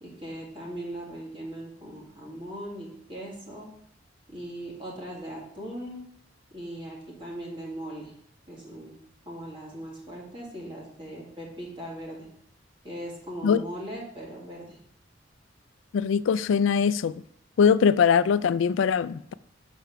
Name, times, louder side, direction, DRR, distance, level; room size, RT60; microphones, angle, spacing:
voice 1, 0.0-3.7 4.3-6.0 6.5-8.1 8.5-9.0 9.3-12.3 12.8-14.8, right 1 dB, 25° right, 2.1 m, -39 dB
voice 2, 15.9-17.1 17.6-19.3, left 6 dB, 80° left, 0.3 m, -22 dB
6.8 x 4.6 x 5.7 m
head